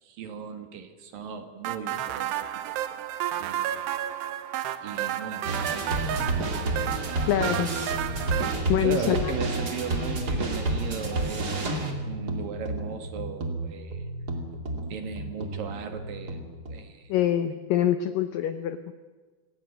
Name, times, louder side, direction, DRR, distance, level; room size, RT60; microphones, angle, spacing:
voice 1, 0.0-3.0 3.4-3.8 4.8-6.5 8.8-11.5 11.8-14.0 14.9-17.1, right 6 dB, 60° right, 6 dB, 3.0 m, -37 dB
sound 1, 1.6-8.6, right 12 dB, 75° right, 3.0 m, -31 dB
sound 2, 5.4-16.8, right 2 dB, 30° right, 2.2 m, -30 dB
voice 2, 7.3-7.9 8.7-9.3 17.1-18.9, left 11 dB, 85° left, 10 dB, 1.9 m, -25 dB
27.5 x 16.0 x 8.7 m, 1.3 s
omnidirectional pair, 5.1 m